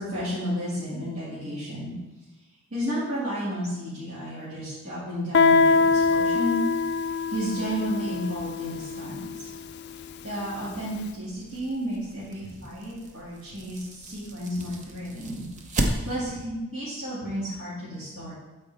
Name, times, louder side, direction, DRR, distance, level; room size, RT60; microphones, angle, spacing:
voice 1, 0.0-1.9 2.7-6.6 7.3-9.5 10.2-18.3, equal, 55° right, -11 dB, 2.3 m, -32 dB
Guitar, 5.3-10.8, left 4 dB, 50° left, 0.3 m, -24 dB
sound 1, 10.9-16.5, right 1 dB, 35° right, 0.7 m, -35 dB
12.5 x 4.4 x 3.5 m, 1.1 s
head